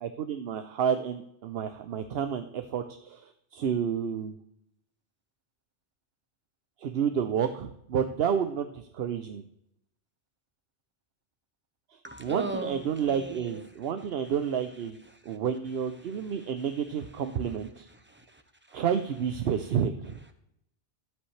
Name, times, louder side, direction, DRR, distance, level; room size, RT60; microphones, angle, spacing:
voice 1, 0.0-4.4 6.8-9.4 11.9-15.0 15.2-17.9 18.7-20.2, right 8 dB, 65° right, 8 dB, 0.8 m, -30 dB
voice 2, 12.0-13.6 15.2-15.4 16.0-16.5 18.0-18.4 18.7-18.8, right 2 dB, 10° right, 6 dB, 1.0 m, -39 dB
12.5 x 8.6 x 3.2 m, 0.76 s
omnidirectional pair, 1.2 m